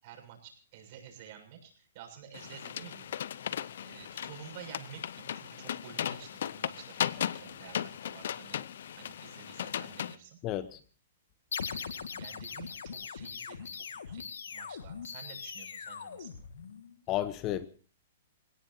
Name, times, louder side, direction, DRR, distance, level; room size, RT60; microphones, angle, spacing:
voice 1, 0.0-3.2 3.8-8.7 8.9-10.4 11.7-16.3, right 8 dB, 45° right, 3 dB, 7.1 m, -51 dB
sound 1, 2.3-10.2, left 9 dB, 70° left, 0.8 m, -37 dB
voice 2, 10.4-10.8 17.1-17.7, left 13 dB, 30° left, 14 dB, 1.0 m, -32 dB
sound 2, 11.5-16.9, left 6 dB, 90° left, 2.0 m, -41 dB
28.0 x 17.5 x 2.9 m, 0.39 s
hypercardioid pair, 150°, 0 cm